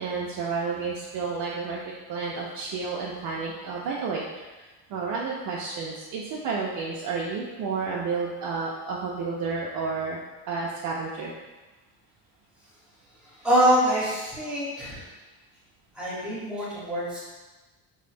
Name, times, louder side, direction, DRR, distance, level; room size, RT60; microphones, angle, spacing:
voice 1, 0.0-1.8 2.1-10.2 10.5-11.3, right 4 dB, 50° right, -4 dB, 0.4 m, -31 dB
voice 2, 13.4-15.0 16.0-17.2, equal, ahead, -9 dB, 1.0 m, -24 dB
3.0 x 2.0 x 3.2 m, 1.2 s
cardioid pair, 125°, 45 cm